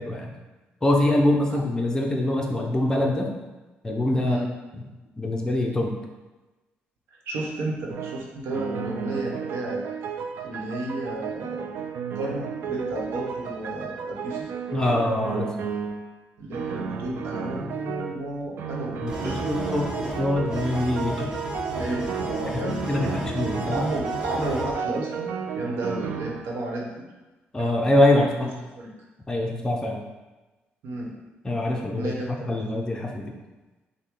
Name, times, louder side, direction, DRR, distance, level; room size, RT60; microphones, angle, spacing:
voice 1, 0.8-3.3 3.8-4.4 5.2-5.9 14.7-15.5 19.0-21.3 22.9-23.8 27.5-28.5 29.3-30.0 31.4-33.3, left 1 dB, 15° left, 1 dB, 0.5 m, -24 dB
voice 2, 7.3-9.8 10.4-11.7 12.1-14.5 16.4-20.4 21.7-23.2 23.7-27.0 28.7-28.9 30.8-31.1 31.9-32.5, right 1 dB, 90° right, -2 dB, 1.0 m, -32 dB
sound 1, 7.9-8.2 8.5-16.1 16.5-18.2 18.6-26.5 27.6-27.7, right 7 dB, 65° right, 0.4 m, -33 dB
sound 2, 19.1-24.7, equal, 20° right, 0.8 m, -33 dB
6.2 x 2.2 x 3.7 m, 1.1 s
cardioid pair, 155°, 4 cm